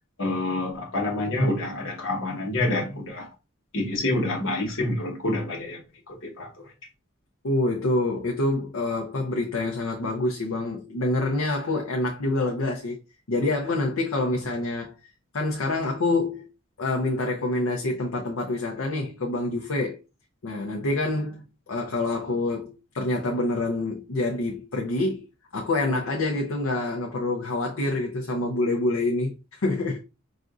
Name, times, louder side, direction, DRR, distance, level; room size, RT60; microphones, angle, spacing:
voice 1, 0.2-3.3 3.7-5.8 6.1-6.7, left 1 dB, 65° left, 1.2 m, -27 dB
voice 2, 7.4-13.0 13.3-14.9 15.3-16.5 16.8-20.0 20.4-25.2 25.5-30.0, left 2 dB, 85° left, 0.6 m, -26 dB
5.0 x 2.5 x 2.4 m
head